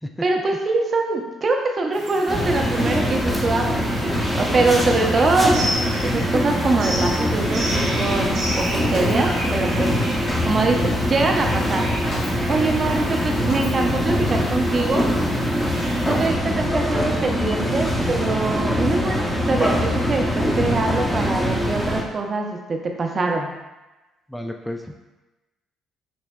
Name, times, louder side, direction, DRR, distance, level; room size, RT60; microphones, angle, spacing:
voice 1, 0.2-5.6 6.0-9.9 10.4-11.8 12.5-15.0 16.0-23.5, right 3 dB, 40° right, 2 dB, 0.6 m, -23 dB
sound 1, 1.9-16.3, right 1 dB, 70° right, 0.8 m, -33 dB
sound 2, 2.3-22.0, equal, 25° left, 0.9 m, -23 dB
Walk footsteps, 8.5-13.9, left 1 dB, 70° left, 1.3 m, -39 dB
voice 2, 10.0-10.3 24.3-25.1, left 1 dB, 5° left, 3 dB, 0.3 m, -32 dB
6.1 x 2.1 x 2.3 m, 1.1 s
hypercardioid pair, 50°, 0 cm